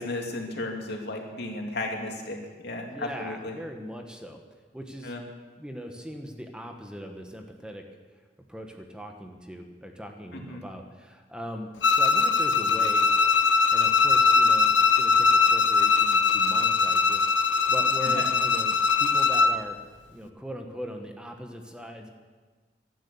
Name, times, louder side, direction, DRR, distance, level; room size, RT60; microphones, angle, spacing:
voice 1, 0.0-2.4 2.6-3.5 5.0-5.2 10.3-10.6 18.1-18.2, left 2 dB, 65° left, 1 dB, 2.7 m, -34 dB
voice 2, 2.8-4.4 4.7-5.1 5.6-7.9 8.5-13.1 13.7-17.3 17.7-19.8 20.1-22.1, equal, 5° right, 3 dB, 1.2 m, -39 dB
Bowed string instrument, 11.8-19.6, left 4 dB, 90° left, 0.9 m, -21 dB
16.5 x 12.5 x 7.1 m, 1.4 s
head